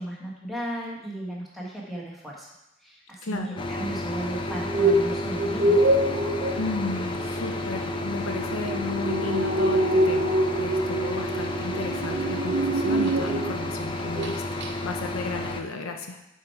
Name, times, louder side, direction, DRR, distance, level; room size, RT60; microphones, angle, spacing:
voice 1, 0.0-2.5 2.8-5.8, right 1 dB, ahead, -5 dB, 1.4 m, -35 dB
voice 2, 3.2-3.6 6.6-16.2, left 3 dB, 70° left, 5 dB, 0.6 m, -34 dB
sound 1, 3.6-15.6, left 1 dB, 25° left, 0.4 m, -32 dB
sound 2, 4.5-13.7 14.0-14.3 14.6-14.7, right 1 dB, 50° right, 0.7 m, -25 dB
7.4 x 4.6 x 4.6 m, 0.89 s
head